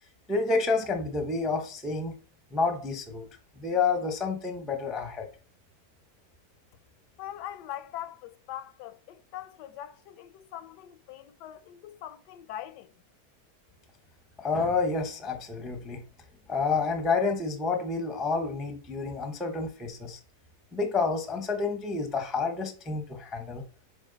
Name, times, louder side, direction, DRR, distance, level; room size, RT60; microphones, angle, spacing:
voice 1, 0.3-2.1 2.5-3.3 3.6-5.3 14.4-16.0 16.5-20.2 20.7-23.6, left 4 dB, ahead, 0.4 m, -29 dB
voice 2, 7.2-12.9, left 11 dB, 85° left, 1.2 m, -42 dB
7.1 x 3.8 x 3.9 m
omnidirectional pair, 1.8 m